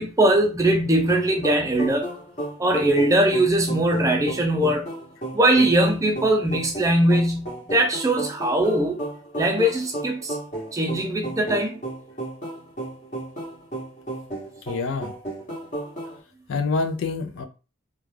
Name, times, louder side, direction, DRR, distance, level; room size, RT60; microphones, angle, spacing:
voice 1, 0.0-2.1 2.6-4.9 5.3-9.0 9.4-10.4 10.7-11.8, right 1 dB, 15° right, 0.4 m, -21 dB
sound 1, 1.1-16.2, right 1 dB, 35° left, 1.0 m, -34 dB
voice 2, 14.7-15.1 16.5-17.5, left 4 dB, 75° left, 0.4 m, -26 dB
2.4 x 2.3 x 3.2 m
head